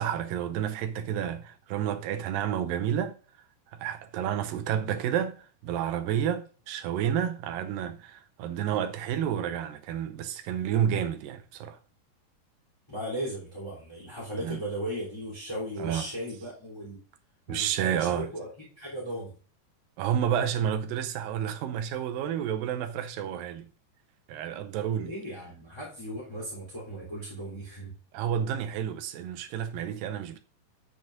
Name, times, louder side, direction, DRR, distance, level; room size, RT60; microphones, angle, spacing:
voice 1, 0.0-3.2 3.7-11.8 14.4-14.6 15.8-16.1 17.5-18.3 20.0-23.7 24.3-25.1 28.1-30.4, right 9 dB, 85° right, 2.4 m, -30 dB
voice 2, 12.9-17.0 17.5-19.3 24.9-27.9, right 1 dB, 10° left, 2.8 m, -37 dB
10.5 x 7.9 x 2.6 m
omnidirectional pair, 4.0 m